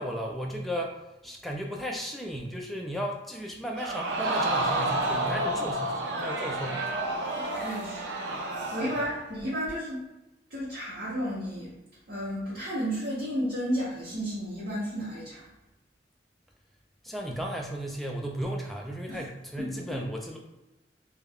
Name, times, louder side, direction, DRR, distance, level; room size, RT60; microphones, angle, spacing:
voice 1, 0.0-6.8 17.0-20.4, equal, ahead, -1 dB, 0.3 m, -35 dB
Crowd, 3.8-9.2 9.7-9.8, right 2 dB, 70° right, 0.4 m, -30 dB
voice 2, 7.3-8.0 8.5-10.0 10.5-11.7 12.1-15.4 19.1-19.2 19.6-20.0, equal, 50° right, -10 dB, 0.8 m, -33 dB
2.3 x 2.1 x 3.4 m, 0.99 s
head